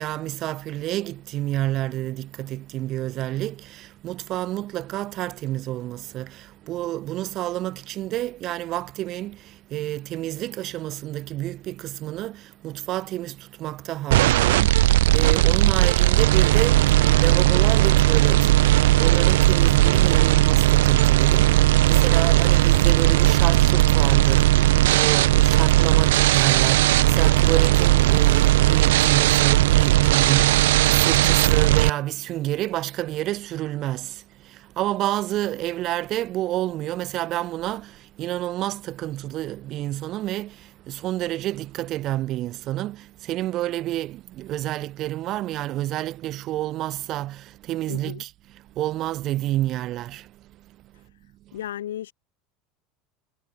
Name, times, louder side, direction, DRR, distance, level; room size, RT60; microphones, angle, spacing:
voice 1, 0.0-51.0 51.5-51.6, right 15 dB, 45° right, 1.5 m, -29 dB
sound 1, 14.1-31.9, right 16 dB, 65° right, 0.4 m, -17 dB
voice 2, 15.5-15.8 47.9-48.2 51.5-52.1, left 11 dB, 75° left, 3.8 m, -35 dB
figure-of-eight pair, 75°, 0 cm